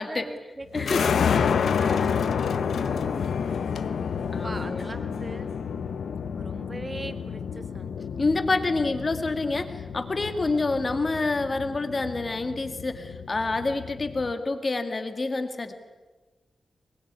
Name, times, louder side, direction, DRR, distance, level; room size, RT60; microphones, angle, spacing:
voice 1, 0.0-3.4 4.4-5.5 6.3-8.0, right 2 dB, 20° right, 8 dB, 1.8 m, -41 dB
sound 1, 0.7-14.3, left 6 dB, 90° left, 1.0 m, -29 dB
voice 2, 0.7-1.0 4.3-4.8 8.2-15.7, left 3 dB, 30° left, 7 dB, 2.2 m, -27 dB
23.5 x 22.0 x 9.7 m, 1.3 s
wide cardioid pair, 165°, 0 cm